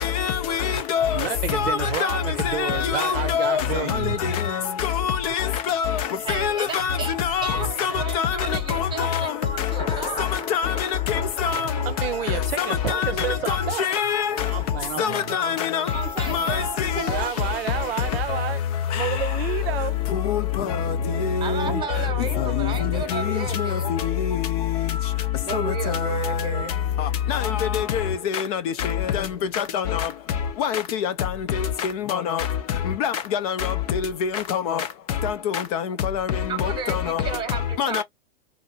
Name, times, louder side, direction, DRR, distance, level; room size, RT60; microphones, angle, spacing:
voice 1, 0.0-1.2 1.5-3.6 4.5-5.9 6.3-8.4 8.7-9.3 10.5-10.7 11.1-11.7 12.6-14.3 15.0-15.8 16.3-16.9 20.3-20.7 21.2-21.6 23.1-23.2 27.0-27.4 27.7-28.0 28.3-28.6 29.1-29.2 29.6-30.0 30.6-31.1 31.8-32.4 33.0-34.8 35.2-35.3 36.1-36.3 36.6-37.2 37.8-38.0, left 8 dB, 40° left, 0.5 m, -25 dB
voice 2, 1.1-4.4 7.5-8.0 11.8-13.9 14.4-15.4 17.0-18.6 18.9-20.0, right 10 dB, 70° right, 0.6 m, -30 dB
voice 3, 6.2-7.1 7.4-10.3 15.8-17.5 21.4-24.0 25.4-26.8 36.5-38.0, right 6 dB, 15° right, 1.0 m, -33 dB
Thunder, 7.9-25.0 25.3-25.4, left 4 dB, 15° left, 0.8 m, -42 dB
2.7 x 2.5 x 2.7 m
hypercardioid pair, 125°, 31 cm